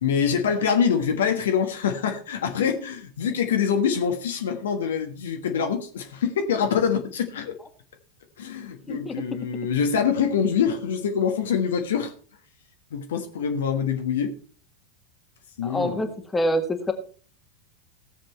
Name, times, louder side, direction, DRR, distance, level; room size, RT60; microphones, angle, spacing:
voice 1, 0.0-7.5 8.4-12.1 12.9-14.3 15.6-16.2, left 7 dB, 65° left, 5 dB, 1.4 m, -25 dB
voice 2, 15.6-16.9, equal, 15° left, 6 dB, 1.8 m, -26 dB
16.0 x 7.5 x 4.4 m, 0.43 s
figure-of-eight pair, 85°, 0 cm